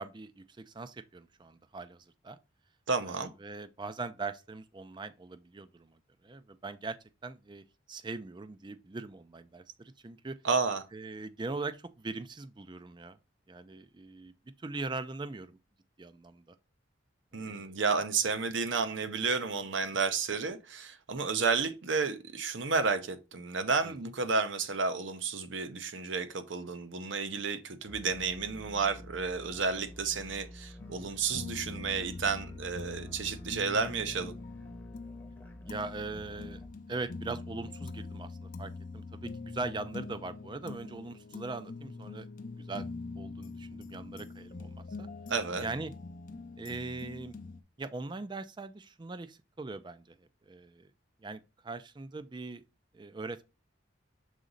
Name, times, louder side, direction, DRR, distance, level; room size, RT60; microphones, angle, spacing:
voice 1, 0.0-2.4 3.0-7.0 7.2-10.4 10.9-13.2 13.5-15.6 16.0-16.6 17.3-17.8 23.8-23.9 35.7-36.6 36.9-42.9 43.2-45.1 45.6-45.9 46.6-47.3 47.8-50.2 50.4-50.9 51.2-52.6 52.9-53.4, right 3 dB, 20° right, 0.4 m, -41 dB
voice 2, 2.9-3.3 10.4-10.9 17.3-34.3 45.3-45.7, right 4 dB, 65° right, 0.7 m, -31 dB
sound 1, 27.9-36.7, left 1 dB, 10° left, 0.8 m, -49 dB
sound 2, 30.8-47.6, left 3 dB, 40° left, 0.5 m, -44 dB
6.4 x 4.0 x 3.8 m
head